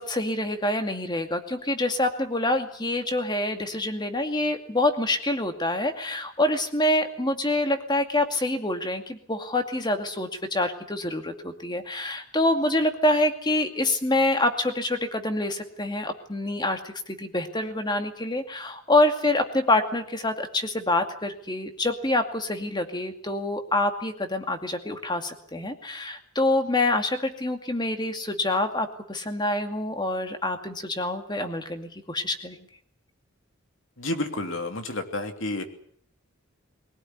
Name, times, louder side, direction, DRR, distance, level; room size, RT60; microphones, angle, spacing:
voice 1, 0.0-32.6, left 1 dB, 20° left, 6 dB, 2.3 m, -26 dB
voice 2, 34.0-35.6, left 2 dB, 65° left, 6 dB, 3.1 m, -30 dB
23.0 x 17.5 x 9.5 m, 0.62 s
head